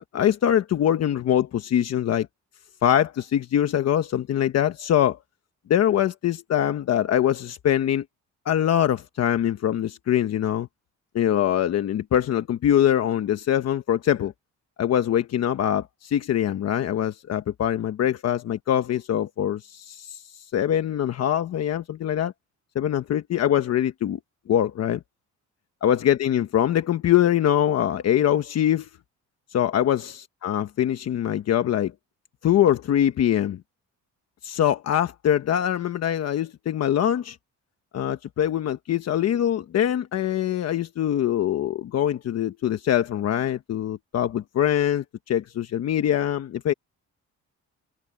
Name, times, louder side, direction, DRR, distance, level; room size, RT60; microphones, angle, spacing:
voice 1, 0.1-2.3 2.8-5.2 5.7-8.0 8.4-10.7 11.1-14.3 14.8-20.2 20.5-22.3 22.7-24.2 24.5-25.0 25.8-28.9 29.5-31.9 32.4-33.6 34.4-37.4 37.9-46.7, left 10 dB, 55° left, 1.1 m, -23 dB
cardioid pair, 130°, 31 cm